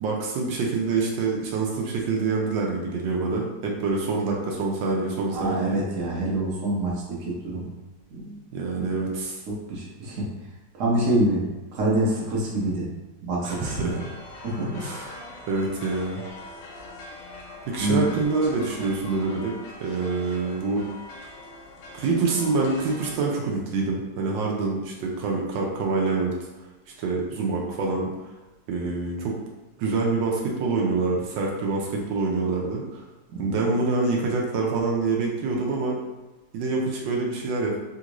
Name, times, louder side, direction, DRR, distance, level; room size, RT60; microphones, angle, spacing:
voice 1, 0.0-5.8 8.5-9.4 13.4-14.0 14.8-15.2 15.5-16.2 17.7-19.5 19.8-20.8 21.9-26.3 27.0-28.1 28.7-29.4 29.8-33.0 33.4-36.0 36.5-37.8, right 3 dB, 85° right, -1 dB, 1.4 m, -26 dB
voice 2, 5.3-7.7 8.1-8.4 8.8-8.9 9.7-10.3 10.8-11.4 11.7-12.9 13.2-13.9 14.4-14.8 17.8-18.1 33.3-33.4, right 1 dB, 50° right, -4 dB, 1.1 m, -26 dB
sound 1, 13.5-23.1, left 2 dB, 75° left, 1.3 m, -42 dB
3.5 x 2.5 x 2.9 m, 1.1 s
omnidirectional pair, 2.0 m